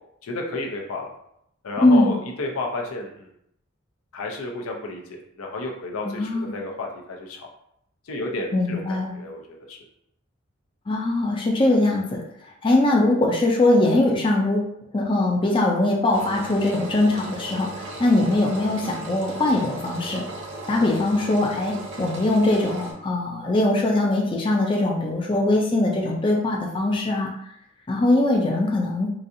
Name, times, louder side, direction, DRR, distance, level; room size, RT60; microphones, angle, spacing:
voice 1, 0.2-1.1 1.6-3.3 4.1-7.5 8.0-9.8, left 2 dB, 85° left, 1 dB, 0.6 m, -32 dB
voice 2, 1.8-2.1 6.0-6.5 8.5-9.2 10.9-12.2 12.6-14.6 14.9-17.7 18.0-20.2 20.7-27.3 27.9-29.1, left 2 dB, 25° left, -1 dB, 0.4 m, -21 dB
Engine, 16.1-22.9, right 2 dB, 60° right, 0.7 m, -36 dB
4.0 x 2.4 x 2.6 m, 0.75 s
head